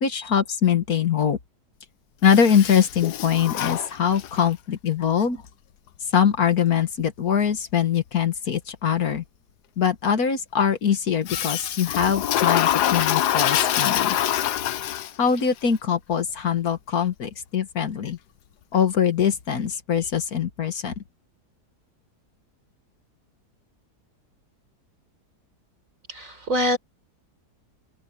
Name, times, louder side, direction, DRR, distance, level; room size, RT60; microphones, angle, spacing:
voice 1, 0.0-1.4 2.2-5.4 6.1-9.2 9.8-14.2 15.2-18.2 18.7-21.0, left 8 dB, 65° left, 1.8 m, -22 dB
Toilet flush, 2.2-4.5 11.3-15.4, left 11 dB, 80° left, 1.4 m, -25 dB
voice 2, 26.1-26.8, equal, 50° right, 4.7 m, -24 dB
open air
omnidirectional pair, 1.7 m